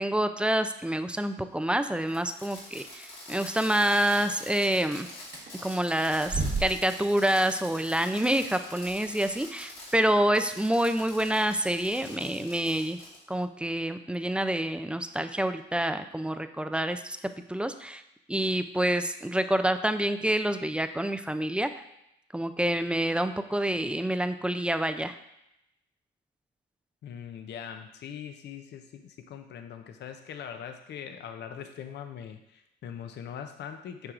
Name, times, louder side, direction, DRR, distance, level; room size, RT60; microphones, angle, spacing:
voice 1, 0.0-5.1 5.6-13.0 13.3-17.2 17.5-18.0 18.3-21.7 22.3-25.1, right 1 dB, 5° right, 9 dB, 0.3 m, -27 dB
Fireworks, 2.1-9.9 10.3-13.2, left 1 dB, 85° left, 2.5 m, -45 dB
sound 1, 5.2-12.3, right 3 dB, 55° right, 1.2 m, -39 dB
voice 2, 27.0-34.1, left 8 dB, 60° left, 7 dB, 0.5 m, -41 dB
8.8 x 4.7 x 2.5 m, 0.84 s
cardioid pair, 90°, 20 cm